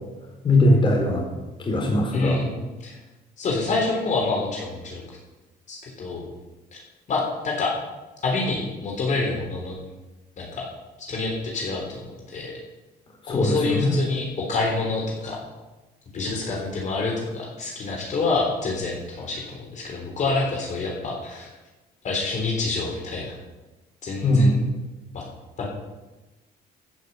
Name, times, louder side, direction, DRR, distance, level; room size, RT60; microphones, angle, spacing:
voice 1, 0.4-1.3 1.7-2.4 13.3-13.9 24.2-24.6, left 1 dB, 30° left, -1 dB, 3.9 m, -20 dB
voice 2, 2.1-2.9 3.4-5.2 5.7-6.3 6.7-6.8 7.1-7.7 8.2-9.7 10.4-10.7 11.0-12.0 12.3-12.5 13.3-15.4 16.1-21.5 22.0-23.3 24.0-24.6 25.1-25.2 25.6-25.7, left 3 dB, 45° left, -1 dB, 3.7 m, -27 dB
14.0 x 6.6 x 8.2 m, 1.1 s
cardioid pair, 110°, 17 cm